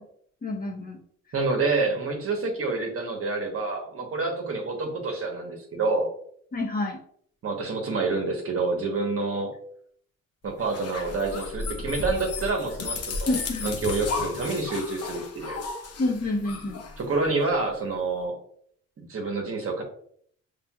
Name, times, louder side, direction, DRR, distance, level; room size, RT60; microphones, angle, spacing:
voice 1, 0.4-1.0 6.5-7.0 13.3-13.7 16.0-16.8, left 2 dB, 30° left, 1 dB, 1.2 m, -28 dB
voice 2, 1.3-6.1 7.4-9.5 10.4-15.6 17.0-18.4 19.0-19.8, right 3 dB, 50° right, 1 dB, 1.2 m, -28 dB
sound 1, 10.6-17.5, left 4 dB, 55° left, 0.9 m, -34 dB
5.7 x 3.3 x 2.3 m, 0.63 s
cardioid pair, 90°, 30 cm